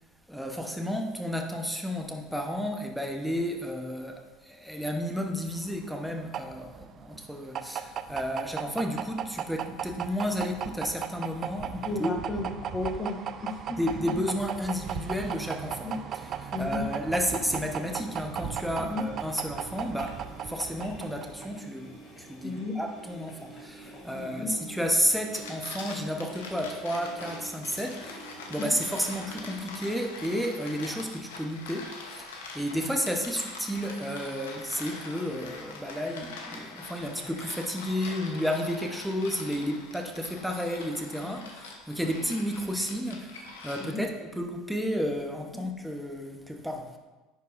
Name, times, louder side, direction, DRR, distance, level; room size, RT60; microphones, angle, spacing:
voice 1, 0.3-12.1 13.7-15.9 16.4-47.0, equal, ahead, 1.0 m, -32 dB
sound 1, 5.6-21.6, right 8 dB, 50° right, 0.3 m, -36 dB
voice 2, 11.8-13.8 14.1-14.2 15.8-16.0 16.5-16.8 18.8-19.1 22.4-22.8 24.1-24.5 28.6-28.8 41.2-41.5 43.8-44.1 45.5-45.7, left 3 dB, 30° left, 1.2 m, -34 dB
Engine, 16.6-30.0, right 2 dB, 50° left, 2.2 m, -48 dB
sound 2, 25.1-44.2, left 3 dB, 85° left, 0.9 m, -43 dB
10.5 x 4.7 x 2.6 m
hypercardioid pair, 80°, 0 cm